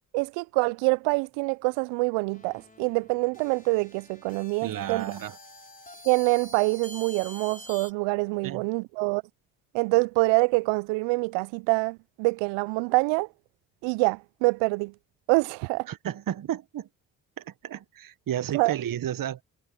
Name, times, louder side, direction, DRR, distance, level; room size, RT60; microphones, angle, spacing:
voice 1, 0.1-5.0 6.1-9.2 9.7-13.3 13.8-14.9 15.3-15.9 18.5-18.7, right 28 dB, 75° right, 0.6 m, -25 dB
sound 1, 2.3-7.9, left 1 dB, 20° left, 4.6 m, -47 dB
voice 2, 4.6-5.4 8.4-8.6 15.9-16.9 17.4-19.4, right 11 dB, 45° right, 1.2 m, -32 dB
hypercardioid pair, 50°, 45 cm